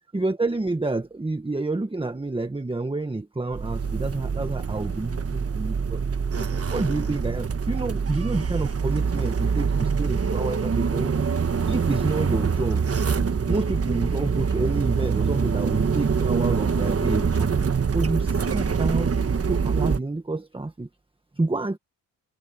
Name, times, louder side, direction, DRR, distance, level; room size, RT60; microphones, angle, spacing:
voice 1, 0.0-6.0 6.3-11.3 11.7-12.8 13.5-17.5 17.9-19.1 19.4-20.9 21.4-21.8, right 2 dB, 10° right, 1.4 m, -28 dB
sound 1, 3.5-20.0, right 6 dB, 35° right, 1.3 m, -25 dB
cardioid pair, 90°, 43 cm